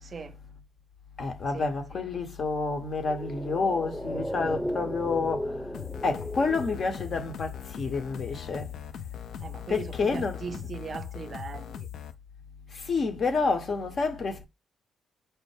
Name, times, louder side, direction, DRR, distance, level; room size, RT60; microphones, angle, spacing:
voice 1, 0.0-0.4 1.5-1.7 9.4-11.9, right 5 dB, 45° right, 0.3 m, -39 dB
voice 2, 1.2-5.7 6.0-8.7 9.7-10.7 12.7-14.5, left 4 dB, 55° left, 0.7 m, -29 dB
sound 1, 3.0-7.6 7.8-7.9, equal, 10° left, 0.7 m, -35 dB
sound 2, 5.7-12.1, left 9 dB, 70° left, 0.3 m, -40 dB
4.4 x 2.1 x 3.2 m
hypercardioid pair, 45°, 0 cm